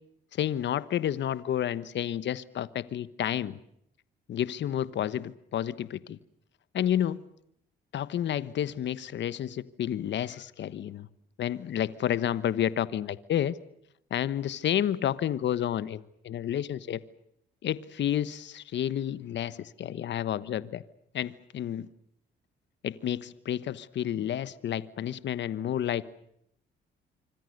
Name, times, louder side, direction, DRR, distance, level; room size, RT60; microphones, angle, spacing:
voice 1, 0.4-3.6 4.3-6.2 6.7-7.2 7.9-11.1 11.4-13.5 14.1-17.0 17.6-20.8 21.1-21.9 22.8-26.1, left 10 dB, 65° left, 16 dB, 1.2 m, -30 dB
26.5 x 25.5 x 6.6 m, 0.74 s
cardioid pair, 90°, 20 cm